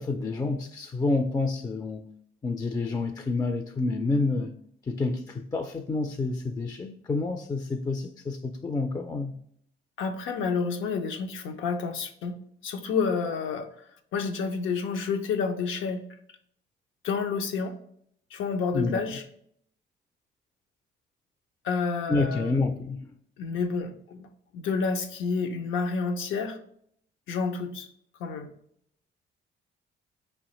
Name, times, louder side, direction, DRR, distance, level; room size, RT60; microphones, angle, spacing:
voice 1, 0.0-2.1 2.4-4.6 4.9-9.3 18.7-19.0 22.1-23.1, left 3 dB, 20° left, 0.3 m, -28 dB
voice 2, 10.0-12.4 12.6-13.7 14.1-16.0 17.0-17.8 18.3-19.2 21.6-22.6 23.4-24.3 24.5-26.6 27.3-27.9 28.2-28.5, left 5 dB, 80° left, 0.6 m, -29 dB
4.7 x 3.1 x 3.0 m
cardioid pair, 90°, 20 cm